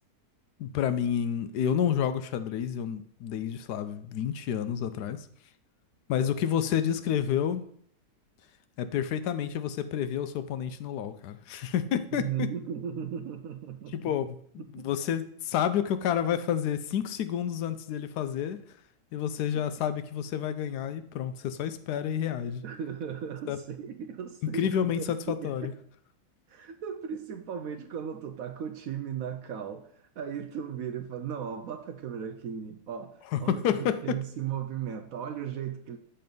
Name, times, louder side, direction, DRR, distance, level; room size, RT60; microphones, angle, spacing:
voice 1, 0.6-5.3 6.1-7.6 8.8-12.5 13.9-18.6 19.1-22.6 23.5-23.6 24.4-25.7 33.3-34.2, left 9 dB, 75° left, 11 dB, 1.1 m, -29 dB
voice 2, 12.1-14.1 14.7-14.9 22.6-25.7 26.5-36.0, right 8 dB, 70° right, 7 dB, 0.9 m, -36 dB
7.7 x 4.2 x 5.2 m, 0.63 s
omnidirectional pair, 1.8 m